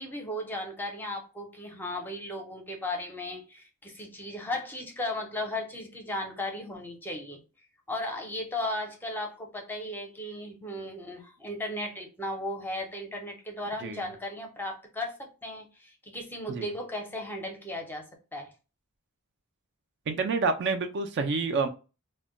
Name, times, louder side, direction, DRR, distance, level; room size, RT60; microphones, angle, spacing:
voice 1, 0.0-7.4 7.9-18.5, left 1 dB, 10° left, 0.5 m, -36 dB
voice 2, 20.1-21.7, right 4 dB, 50° right, 0.4 m, -28 dB
2.2 x 2.1 x 3.7 m
head